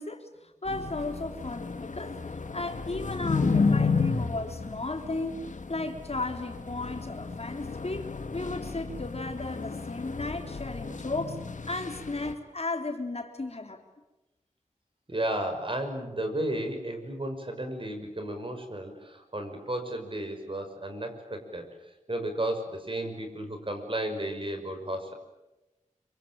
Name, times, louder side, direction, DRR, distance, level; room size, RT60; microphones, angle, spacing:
voice 1, 0.0-2.2 2.5-5.4 5.7-11.4 11.7-13.8, left 2 dB, 50° left, 4 dB, 3.7 m, -35 dB
sound 1, 0.7-12.3, left 4 dB, 75° left, 1.9 m, -32 dB
voice 2, 15.1-25.1, right 1 dB, 40° right, 6 dB, 6.0 m, -33 dB
26.5 x 24.5 x 9.0 m, 0.99 s
wide cardioid pair, 55°, 13 cm